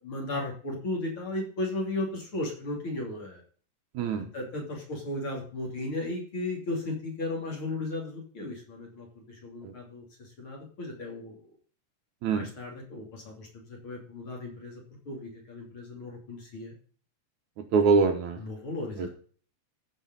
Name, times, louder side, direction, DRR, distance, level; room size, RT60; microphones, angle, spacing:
voice 1, 0.0-3.4 4.3-11.4 12.3-16.7 18.4-19.1, left 2 dB, 40° left, -1 dB, 3.6 m, -35 dB
voice 2, 17.7-18.4 19.0-19.1, right 5 dB, 70° right, 6 dB, 2.2 m, -23 dB
14.5 x 5.6 x 4.0 m, 0.42 s
omnidirectional pair, 3.8 m